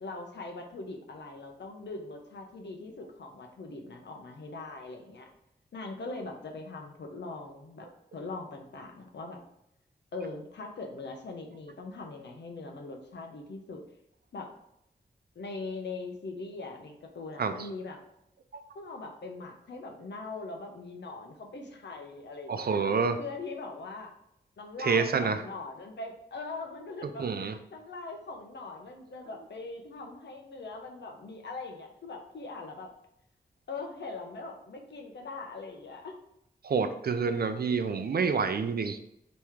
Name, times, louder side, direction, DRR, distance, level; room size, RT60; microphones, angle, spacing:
voice 1, 0.0-5.3 5.7-7.9 8.1-9.4 10.1-13.8 14.3-14.5 15.4-18.0 18.7-22.8 23.2-24.1 24.6-32.9 33.7-36.2, left 3 dB, 85° left, 3 dB, 0.8 m, -41 dB
voice 2, 22.5-23.2 24.8-25.4 27.2-27.6 36.6-39.0, right 5 dB, 60° right, 8 dB, 0.5 m, -28 dB
3.5 x 3.1 x 4.6 m, 0.78 s
wide cardioid pair, 105°, 18 cm